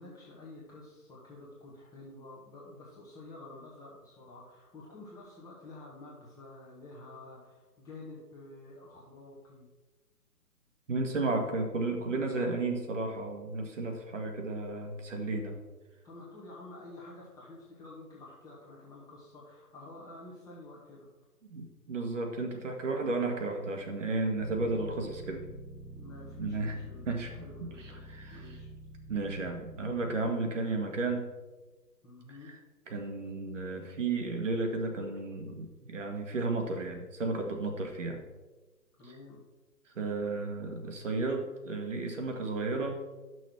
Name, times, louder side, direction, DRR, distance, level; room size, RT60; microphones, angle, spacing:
voice 1, 0.0-9.7 16.0-21.1 26.0-28.0 28.3-28.7 32.0-32.5 39.0-39.4, left 2 dB, 5° left, -5 dB, 1.5 m, -49 dB
voice 2, 10.9-15.6 21.5-25.5 26.4-26.7 27.1-28.4 29.1-31.3 32.5-32.6 32.9-38.2 40.0-43.0, right 3 dB, 50° right, 3 dB, 1.8 m, -33 dB
sound 1, 24.4-30.2, right 1 dB, 25° right, 1.8 m, -48 dB
11.5 x 6.3 x 4.6 m, 1.2 s
figure-of-eight pair, 135°, 47 cm